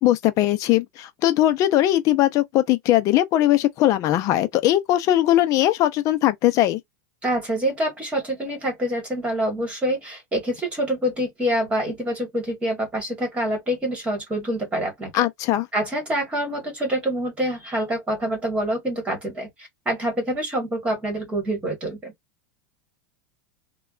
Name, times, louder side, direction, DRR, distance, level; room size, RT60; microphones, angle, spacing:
voice 1, 0.0-6.8 15.1-15.7, left 14 dB, 35° left, 0.5 m, -20 dB
voice 2, 7.2-15.1 15.7-19.5 19.8-22.1, right 1 dB, 15° right, 1.6 m, -26 dB
3.2 x 2.2 x 2.4 m
supercardioid pair, 155°, 10 cm